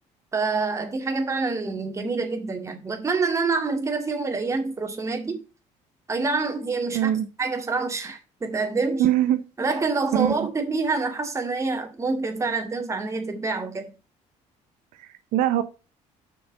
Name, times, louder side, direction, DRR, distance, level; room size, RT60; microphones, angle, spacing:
voice 1, 0.3-5.4 6.1-7.1 7.4-9.1 9.6-13.9, right 4 dB, 25° right, 2.1 m, -26 dB
voice 2, 6.9-7.3 9.0-9.4 10.1-10.5 15.0-15.6, right 12 dB, 85° right, 0.9 m, -22 dB
6.2 x 6.0 x 6.3 m
cardioid pair, 115°, 13 cm